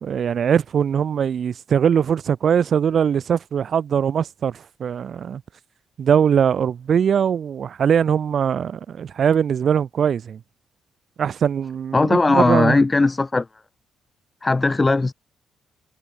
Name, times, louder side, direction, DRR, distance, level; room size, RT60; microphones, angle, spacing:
voice 1, 0.0-5.4 6.0-10.4 11.2-12.8, right 8 dB, 55° right, 0.8 m, -21 dB
voice 2, 11.9-13.5 14.4-15.1, left 3 dB, 20° left, 1.4 m, -18 dB
cardioid pair, 90°, 0 cm